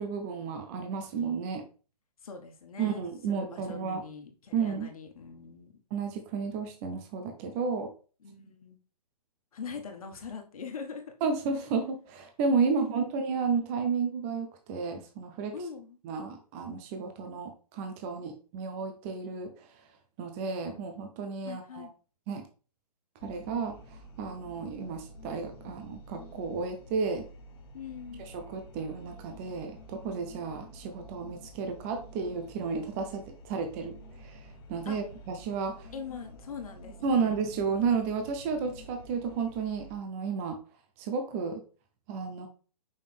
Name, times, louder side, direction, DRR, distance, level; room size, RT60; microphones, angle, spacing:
voice 1, 0.0-1.6 2.8-4.0 4.5-4.9 5.9-7.9 11.2-15.5 16.0-19.5 20.2-21.9 22.3-22.4 23.2-27.3 28.3-34.4 34.7-35.9 37.0-40.6 41.0-41.6 42.1-42.5, right 5 dB, 20° right, 6 dB, 0.6 m, -32 dB
voice 2, 2.2-5.7 8.2-8.8 9.5-11.1 12.7-13.0 15.5-16.0 21.4-21.9 27.7-28.2 34.8-35.0 35.9-37.5, left 6 dB, 60° left, 4 dB, 1.5 m, -42 dB
sound 1, 23.2-40.0, equal, 35° left, 1.1 m, -49 dB
5.5 x 5.0 x 3.4 m, 0.37 s
hypercardioid pair, 155°, 21 cm